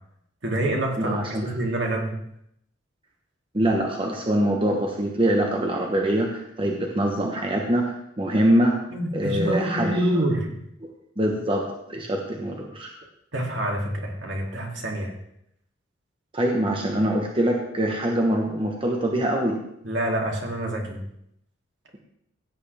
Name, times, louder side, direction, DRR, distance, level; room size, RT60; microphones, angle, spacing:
voice 1, 0.4-2.2 8.9-10.6 13.3-15.1 19.8-21.0, right 1 dB, 65° right, -1 dB, 2.7 m, -27 dB
voice 2, 1.0-1.4 3.5-8.7 9.1-10.0 11.2-13.0 16.3-19.6, right 1 dB, 25° right, 0 dB, 1.2 m, -24 dB
16.0 x 9.4 x 3.4 m, 0.75 s
head